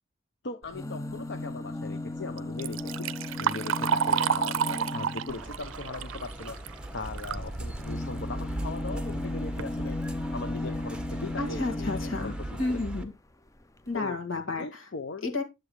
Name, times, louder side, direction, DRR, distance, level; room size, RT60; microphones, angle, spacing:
voice 1, 0.4-3.1 3.4-6.6 6.9-10.0 10.3-12.8 13.9-14.2 14.6-15.3, left 3 dB, 60° left, 7 dB, 0.7 m, -39 dB
sound 1, 0.6-5.5 7.2-12.6 13.6-13.7 13.9-14.0, left 2 dB, 15° left, 0.5 m, -36 dB
Liquid, 2.4-7.5 7.9-8.0 8.9-9.0 9.4-9.7 10.3-10.4 10.9-11.0 11.5-11.7, right 7 dB, 85° right, 0.4 m, -30 dB
sound 2, 5.3-13.0, right 1 dB, 5° right, 1.1 m, -38 dB
voice 2, 11.4-12.3 12.6-13.1 13.9-14.6 15.2-15.4, left 3 dB, 85° left, 3 dB, 2.3 m, -31 dB
10.5 x 7.7 x 3.2 m, 0.24 s
head